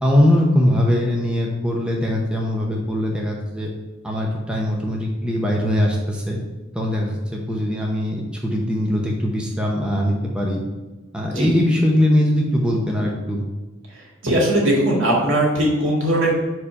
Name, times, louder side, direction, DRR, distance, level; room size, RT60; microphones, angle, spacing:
voice 1, 0.0-3.7 4.0-6.4 6.7-10.6 11.1-13.4, left 1 dB, 5° right, -2 dB, 0.7 m, -21 dB
voice 2, 14.2-16.3, right 1 dB, 65° right, -3 dB, 2.0 m, -19 dB
5.0 x 4.8 x 5.5 m, 1.1 s
head